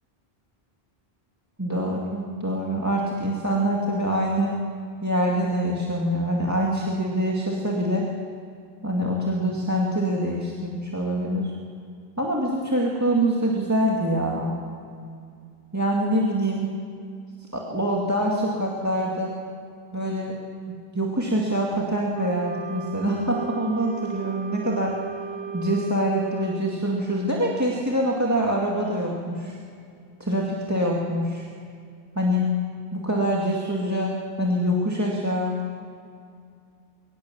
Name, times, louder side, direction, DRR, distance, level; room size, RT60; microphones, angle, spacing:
voice 1, 1.6-4.5 5.0-8.0 8.8-11.5 12.2-14.6 15.7-16.7 17.5-19.3 19.9-20.4 20.9-24.9 25.5-29.6 30.2-31.5 32.2-32.5 32.9-34.1 34.4-35.5, equal, 15° right, -2 dB, 2.2 m, -25 dB
Wind instrument woodwind instrument, 22.1-26.6, right 6 dB, 45° right, 1.8 m, -36 dB
23.0 x 19.5 x 7.3 m, 2.3 s
omnidirectional pair, 1.0 m